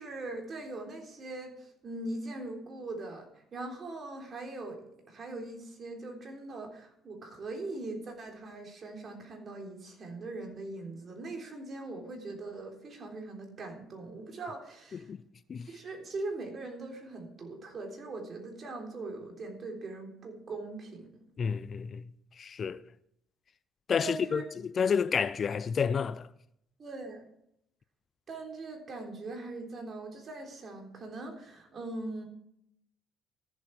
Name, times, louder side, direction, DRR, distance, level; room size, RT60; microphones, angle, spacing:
voice 1, 0.0-4.8 5.1-15.1 15.7-21.1 24.0-24.4 26.8-27.3 28.3-32.2, right 2 dB, 45° right, 3.5 m, -41 dB
voice 2, 21.4-22.0 22.4-22.8 23.9-26.3, left 6 dB, 45° left, 0.5 m, -30 dB
14.0 x 7.6 x 4.7 m
supercardioid pair, 65°, 0 cm